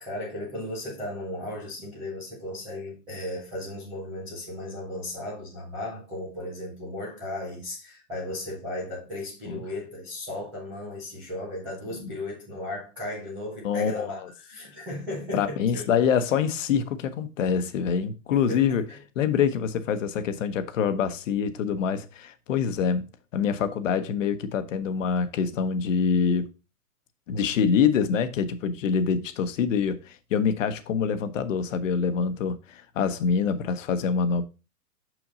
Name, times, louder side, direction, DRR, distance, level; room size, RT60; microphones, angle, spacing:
voice 1, 0.0-16.0 18.3-19.0, left 1 dB, 5° right, 0.3 m, -36 dB
voice 2, 13.6-14.1 15.3-18.8 19.2-26.5 27.3-34.4, left 6 dB, 60° left, 1.1 m, -25 dB
6.2 x 6.1 x 3.9 m
hypercardioid pair, 145°, 44 cm